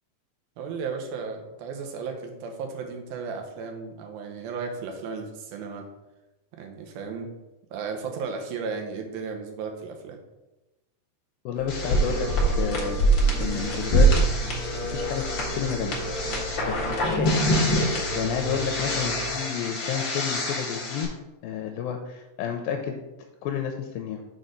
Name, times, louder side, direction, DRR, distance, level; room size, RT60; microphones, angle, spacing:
voice 1, 0.6-5.9 6.5-7.3 7.7-10.2 16.7-17.0, right 5 dB, 85° right, 3 dB, 2.7 m, -35 dB
voice 2, 11.5-13.0 13.4-14.2 14.5-15.9 16.7-17.3 18.2-21.1 21.4-23.0 23.4-24.2, left 8 dB, 85° left, 4 dB, 2.3 m, -31 dB
Singing / Musical instrument, 11.5-19.3, equal, 65° right, 3.0 m, -34 dB
sound 1, 11.7-21.0, right 1 dB, 50° left, 1.5 m, -25 dB
6.3 x 4.3 x 5.1 m, 1.0 s
omnidirectional pair, 4.1 m